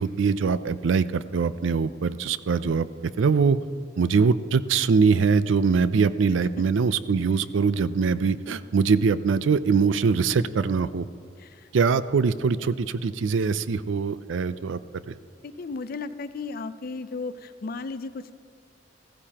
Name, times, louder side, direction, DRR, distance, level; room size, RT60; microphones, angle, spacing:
voice 1, 0.0-2.9 3.2-3.6 4.0-11.0 11.7-14.8 15.1-15.2, right 5 dB, 75° right, 15 dB, 0.4 m, -23 dB
voice 2, 11.4-11.7 15.4-18.4, left 4 dB, 50° left, 13 dB, 0.4 m, -35 dB
15.5 x 14.5 x 2.9 m, 2.3 s
head